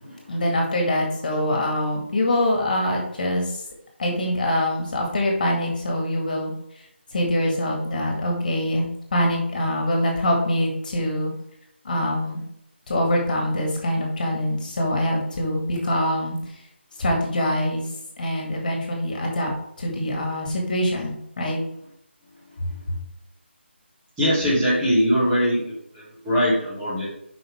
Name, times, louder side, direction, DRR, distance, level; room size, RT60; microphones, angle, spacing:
voice 1, 0.3-3.6 4.0-6.5 7.1-11.3 11.8-12.4 12.9-16.6 17.0-17.9 18.2-19.5 19.8-21.6, left 1 dB, 45° left, 0 dB, 2.1 m, -24 dB
voice 2, 24.2-27.1, equal, 10° right, -9 dB, 2.6 m, -22 dB
7.8 x 5.5 x 3.6 m, 0.73 s
figure-of-eight pair, 165°, 6 cm